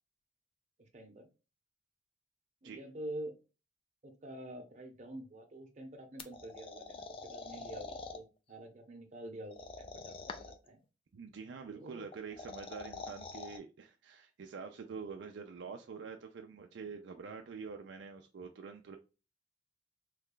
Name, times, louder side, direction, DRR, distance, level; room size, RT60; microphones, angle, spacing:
voice 1, 0.8-1.3 2.6-3.3 4.0-10.8 11.7-12.1, right 1 dB, 40° right, 3 dB, 0.8 m, -47 dB
sound 1, 6.2-8.2 9.5-10.7 12.1-13.6, left 3 dB, 30° left, 0.3 m, -45 dB
voice 2, 11.1-19.0, right 5 dB, 70° right, 4 dB, 0.4 m, -46 dB
3.1 x 2.3 x 3.7 m, 0.32 s
head